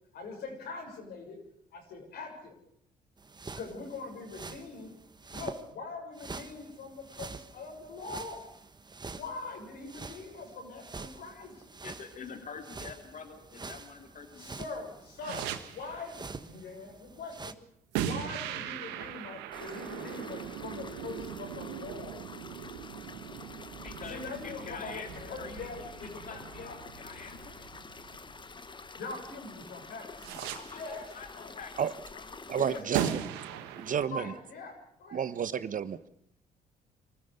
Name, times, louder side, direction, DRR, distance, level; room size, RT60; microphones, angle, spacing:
voice 1, 0.1-1.4 1.7-2.5 3.6-4.9 5.3-8.4 9.1-11.7 14.4-17.5 18.0-22.2 24.1-26.7 29.0-30.0 30.3-31.1 31.4-31.5 32.5-33.1 34.1-35.2, left 3 dB, 70° left, 2 dB, 6.8 m, -42 dB
sound 1, 3.2-5.7 6.1-17.5, right 4 dB, 25° right, 1.4 m, -46 dB
voice 2, 11.8-14.8 23.8-27.7 30.5-32.5 32.9-33.2 33.5-33.9, left 5 dB, 50° left, 4 dB, 2.7 m, -47 dB
sound 2, 15.2-16.1 17.9-28.9 30.2-31.0 32.9-34.1, right 10 dB, 90° right, 1.4 m, -39 dB
sound 3, 19.5-32.8, left 4 dB, 30° left, 1.3 m, -48 dB
voice 3, 32.5-33.1 33.8-34.3 35.1-36.0, right 8 dB, 50° right, 14 dB, 1.1 m, -31 dB
24.5 x 14.0 x 8.1 m, 0.72 s
supercardioid pair, 65°, 17 cm